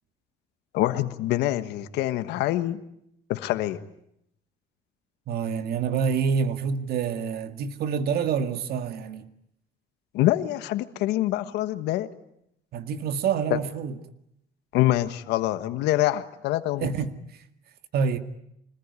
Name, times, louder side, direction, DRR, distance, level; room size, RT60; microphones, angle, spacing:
voice 1, 0.7-2.8 3.3-3.8 10.1-12.1 13.5-13.6 14.7-16.9, left 15 dB, 90° left, 1.3 m, -25 dB
voice 2, 5.3-9.3 12.7-14.0 16.8-17.1 17.9-18.2, right 6 dB, 65° right, 2.0 m, -27 dB
25.5 x 20.0 x 9.7 m
cardioid pair, 110°, 17 cm